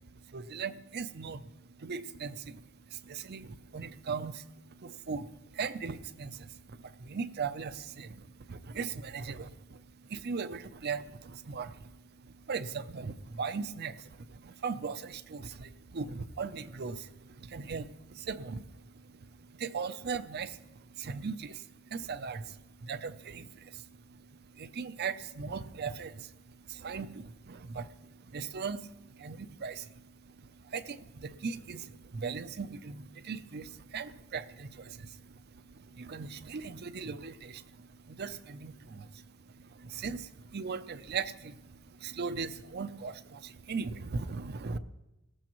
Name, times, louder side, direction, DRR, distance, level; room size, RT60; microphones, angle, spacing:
voice 1, 0.0-1.5 1.8-44.8, right 5 dB, 50° right, 13 dB, 0.5 m, -39 dB
19.0 x 14.5 x 3.0 m, 0.98 s
head